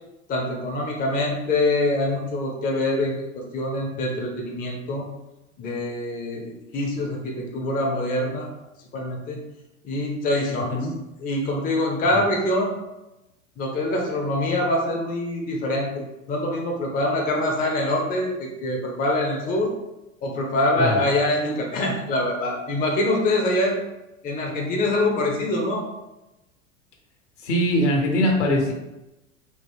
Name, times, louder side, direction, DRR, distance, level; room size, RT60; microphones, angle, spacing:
voice 1, 0.3-3.2 3.5-5.1 5.6-8.5 8.9-9.4 9.8-10.8 11.2-12.7 13.6-19.7 20.2-23.8 24.2-25.8, left 1 dB, 20° left, 0 dB, 0.7 m, -24 dB
voice 2, 27.4-28.7, left 1 dB, 65° left, 1 dB, 1.1 m, -21 dB
4.2 x 2.8 x 3.5 m, 0.97 s
figure-of-eight pair, 85°, 39 cm